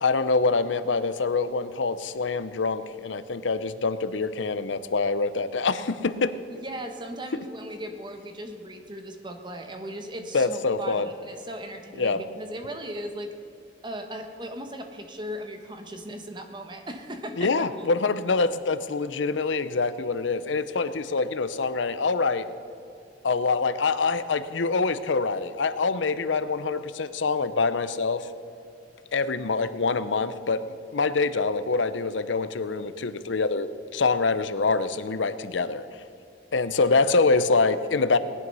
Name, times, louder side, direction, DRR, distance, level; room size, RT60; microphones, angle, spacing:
voice 1, 0.0-6.4 10.3-11.1 12.0-12.2 17.4-22.5 23.2-28.3 29.1-35.9 36.5-38.2, left 4 dB, 85° left, 13 dB, 0.7 m, -25 dB
voice 2, 6.5-13.3 13.8-17.9, equal, 25° right, 5 dB, 1.2 m, -37 dB
18.0 x 11.0 x 5.5 m, 2.7 s
head